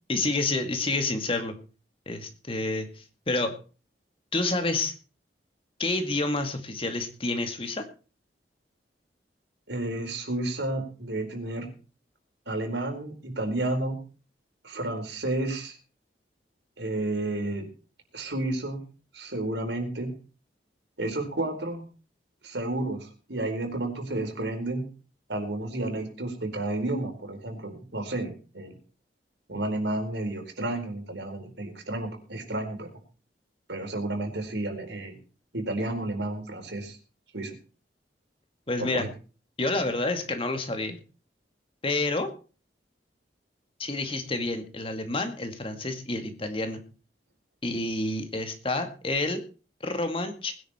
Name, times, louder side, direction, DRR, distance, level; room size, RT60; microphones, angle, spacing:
voice 1, 0.1-1.5 2.1-3.6 4.3-4.9 5.8-7.8 38.7-39.1 39.6-41.0 41.8-42.3 43.8-46.8 47.6-49.4 49.8-50.5, left 2 dB, 30° left, 7 dB, 2.2 m, -29 dB
voice 2, 9.7-11.7 12.5-14.0 14.6-15.8 16.8-17.7 18.1-18.8 19.1-20.1 21.0-21.8 22.4-24.9 25.3-28.7 29.5-32.9 33.7-35.2 35.5-37.0 37.3-37.5 38.8-39.1, right 2 dB, 85° right, 4 dB, 4.5 m, -31 dB
20.0 x 10.5 x 4.4 m, 0.36 s
head